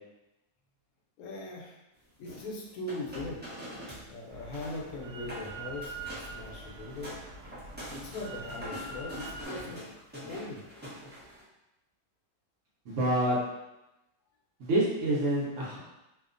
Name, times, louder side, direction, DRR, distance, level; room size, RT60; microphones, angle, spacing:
voice 1, 1.2-1.8 2.2-3.4 4.1-7.1 7.9-9.8 10.1-10.6, left 2 dB, 75° left, -1 dB, 1.0 m, -40 dB
sound 1, 2.2-4.1 4.3-4.8 5.2-5.5 5.8-6.3 6.7-11.4, equal, 15° right, 0.4 m, -43 dB
Drill, 4.3-9.5, right 2 dB, 80° right, 1.1 m, -44 dB
voice 2, 12.9-13.4 14.6-15.8, right 1 dB, 65° right, -6 dB, 0.9 m, -27 dB
2.8 x 2.0 x 2.4 m, 0.95 s
omnidirectional pair, 1.6 m